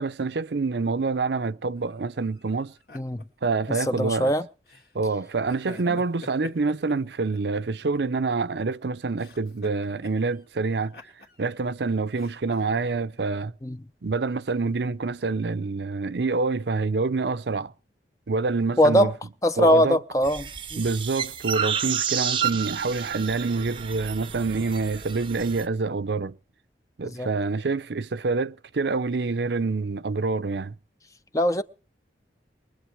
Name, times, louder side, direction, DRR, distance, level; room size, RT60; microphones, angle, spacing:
voice 1, 0.0-2.7 3.4-4.3 4.9-10.9 11.4-13.5 14.0-17.7 18.3-19.1 19.6-20.0 20.8-26.4 27.0-30.7, right 4 dB, 75° right, 0.6 m, -26 dB
sound 1, 1.8-3.9 4.7-5.0 5.5-7.6 7.9-8.8 9.2-10.4 10.7-11.7 12.1-12.9, left 3 dB, 60° left, 3.0 m, -48 dB
voice 2, 3.9-4.5 5.9-6.0 13.6-13.8 18.8-19.1 19.4-20.8 27.0-27.3 31.3-31.6, equal, 20° left, 0.6 m, -22 dB
sound 2, 20.2-25.7, right 8 dB, 30° right, 0.7 m, -30 dB
23.0 x 8.0 x 4.8 m
head